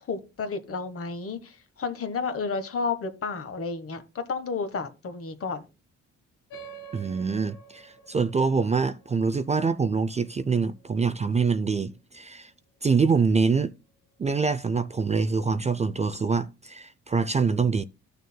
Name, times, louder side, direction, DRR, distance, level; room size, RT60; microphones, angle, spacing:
voice 1, 0.1-5.6, left 4 dB, 50° left, 1.3 m, -31 dB
sound 1, 6.5-11.4, right 5 dB, 90° left, 1.4 m, -48 dB
voice 2, 6.9-12.5 12.8-13.7 14.2-17.8, right 5 dB, 25° right, 0.4 m, -25 dB
14.0 x 6.5 x 2.2 m
cardioid pair, 90°, 30 cm